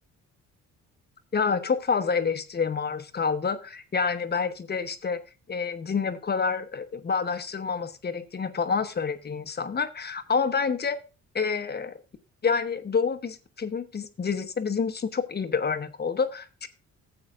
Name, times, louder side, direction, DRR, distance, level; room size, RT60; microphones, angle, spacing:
voice 1, 1.3-5.2 5.5-11.0 11.3-11.9 12.4-16.7, left 5 dB, 35° left, 10 dB, 0.9 m, -28 dB
14.5 x 7.8 x 2.4 m, 0.31 s
cardioid pair, 90°, 30 cm